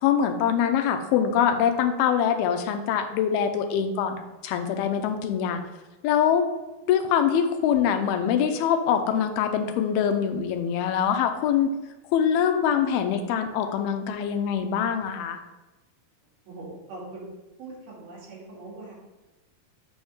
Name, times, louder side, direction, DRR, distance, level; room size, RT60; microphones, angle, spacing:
voice 1, 0.0-4.2 4.4-5.6 6.0-6.5 6.9-11.7 12.1-15.4, left 8 dB, 90° left, 7 dB, 2.6 m, -24 dB
voice 2, 16.4-17.3 17.6-19.0, right 2 dB, 80° right, -7 dB, 4.5 m, -41 dB
8.0 x 3.6 x 6.1 m, 1.1 s
omnidirectional pair, 4.3 m